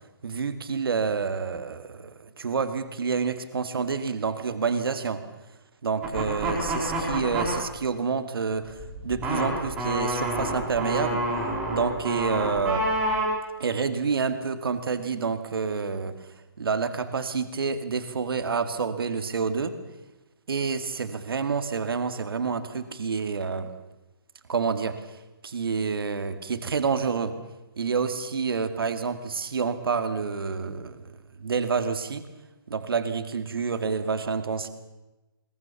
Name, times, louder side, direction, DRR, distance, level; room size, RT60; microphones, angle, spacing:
voice 1, 0.2-5.2 5.8-11.3 11.7-12.9 13.6-16.1 16.6-19.8 20.5-23.7 24.5-25.2 25.4-27.4 27.8-31.1 31.4-32.2 32.7-34.7, right 5 dB, 75° right, 9 dB, 2.1 m, -28 dB
sound 1, 6.0-7.5 8.7-13.3, right 1 dB, 5° right, 4.3 m, -28 dB
22.5 x 22.0 x 7.1 m, 1.1 s
hypercardioid pair, 175°, 12 cm